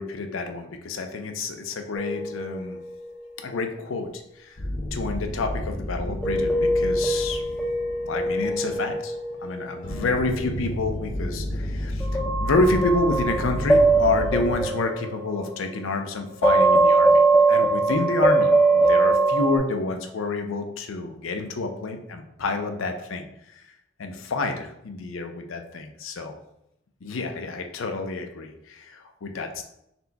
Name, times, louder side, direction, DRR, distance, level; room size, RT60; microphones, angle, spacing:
voice 1, 0.0-2.8 3.4-4.6 4.9-7.4 8.0-9.1 9.4-12.1 12.4-23.3 23.5-23.6 24.0-26.3 27.0-29.6, left 3 dB, 85° left, 6 dB, 0.6 m, -28 dB
sound 1, 1.9-3.1 6.2-10.1 12.0-15.9 16.4-19.6, right 2 dB, 5° left, 0.4 m, -22 dB
sound 2, 4.6-8.8 9.8-14.7, equal, 45° left, 0.7 m, -32 dB
4.3 x 2.2 x 3.9 m, 0.78 s
head